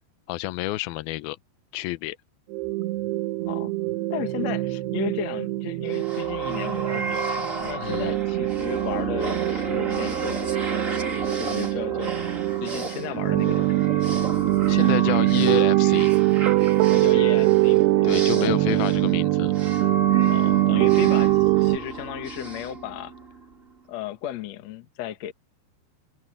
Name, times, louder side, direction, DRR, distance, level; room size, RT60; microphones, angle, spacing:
voice 1, 0.3-1.4 1.7-2.2 7.8-8.1 14.7-16.1 18.0-19.5, left 17 dB, 75° left, 2.5 m, -29 dB
sound 1, 2.5-21.8, right 19 dB, 80° right, 2.9 m, -23 dB
voice 2, 4.1-10.6 11.4-14.0 16.9-18.9 20.3-23.1 23.9-25.3, left 11 dB, 55° left, 2.1 m, -35 dB
sound 2, 5.9-23.5, right 2 dB, 25° right, 2.1 m, -33 dB
omnidirectional pair, 4.8 m